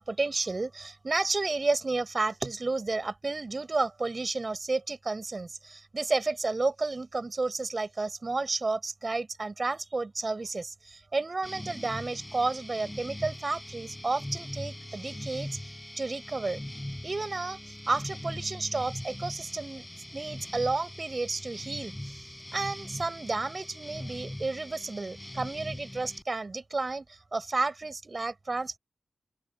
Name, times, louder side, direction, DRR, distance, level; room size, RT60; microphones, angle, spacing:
voice 1, 0.0-16.6 17.0-19.8 20.1-28.8, right 3 dB, 45° right, 4.9 m, -31 dB
sound 1, 11.4-26.2, left 1 dB, 15° left, 5.4 m, -41 dB
open air
cardioid pair, 40°, 0 cm